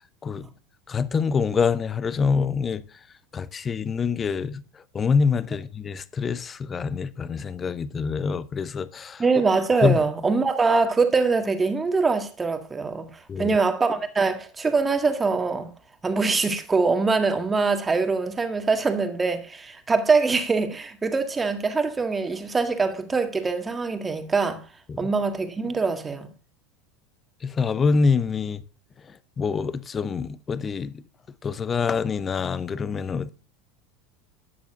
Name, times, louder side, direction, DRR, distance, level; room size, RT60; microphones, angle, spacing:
voice 1, 0.9-2.8 3.3-4.6 4.9-9.2 9.8-10.0 13.3-13.6 24.9-25.1 27.4-28.6 29.4-30.9 31.4-33.3, left 5 dB, 25° left, 0.7 m, -25 dB
voice 2, 9.2-15.7 16.0-24.6 25.0-26.3, right 4 dB, 15° right, 1.7 m, -23 dB
12.5 x 9.2 x 2.5 m
figure-of-eight pair, 80°, 0 cm